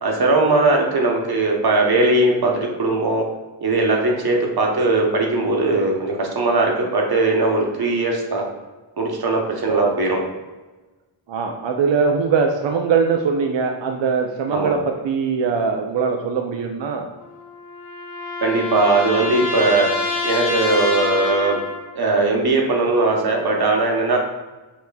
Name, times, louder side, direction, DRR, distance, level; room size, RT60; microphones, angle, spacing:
voice 1, 0.0-3.2 3.6-8.4 9.0-10.2 14.5-14.7 18.4-19.9 20.2-21.6 21.9-24.2, right 2 dB, 50° right, 0 dB, 1.0 m, -19 dB
voice 2, 11.3-17.1, right 5 dB, 65° right, 3 dB, 0.5 m, -21 dB
sound 1, 17.2-21.9, left 3 dB, 40° left, 1.4 m, -26 dB
5.6 x 3.0 x 2.2 m, 1.2 s
cardioid pair, 65°, 48 cm